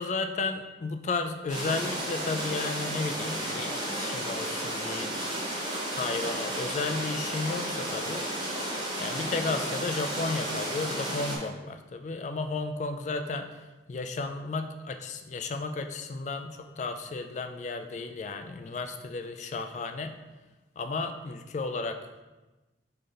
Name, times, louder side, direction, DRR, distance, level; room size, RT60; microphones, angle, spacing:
voice 1, 0.0-5.2 5.7-8.3 9.0-13.6 13.9-20.1 20.8-22.0, left 3 dB, 40° left, 6 dB, 0.3 m, -33 dB
sound 1, 1.5-11.4, right 1 dB, 25° right, 0.9 m, -33 dB
3.8 x 3.3 x 3.9 m, 1.1 s
head